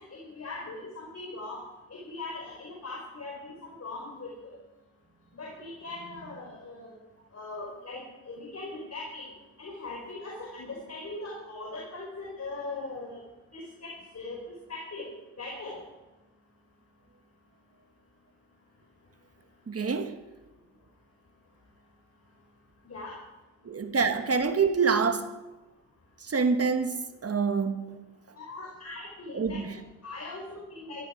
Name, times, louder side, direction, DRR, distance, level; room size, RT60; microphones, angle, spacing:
voice 1, 0.1-1.6 1.9-4.3 5.3-6.9 7.3-9.2 9.6-13.2 13.5-14.4 14.7-15.1 15.4-15.8 22.8-23.2 28.4-29.6 30.0-31.1, left 2 dB, 50° left, 4.5 m, -40 dB
voice 2, 19.7-20.2 23.6-25.4 26.2-28.1 29.3-29.8, right 5 dB, 45° right, 1.4 m, -27 dB
14.5 x 13.0 x 4.9 m
cardioid pair, 55°, 32 cm